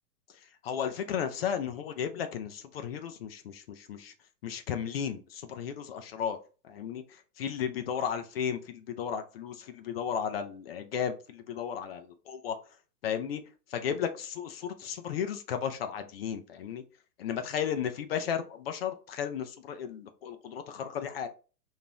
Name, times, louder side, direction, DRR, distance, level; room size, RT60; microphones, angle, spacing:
voice 1, 0.6-4.1 4.4-6.4 6.6-12.6 13.0-13.4 13.7-16.8 17.2-21.3, left 8 dB, 40° left, 8 dB, 0.5 m, -34 dB
5.1 x 2.7 x 2.9 m, 0.34 s
hypercardioid pair, 130°, 48 cm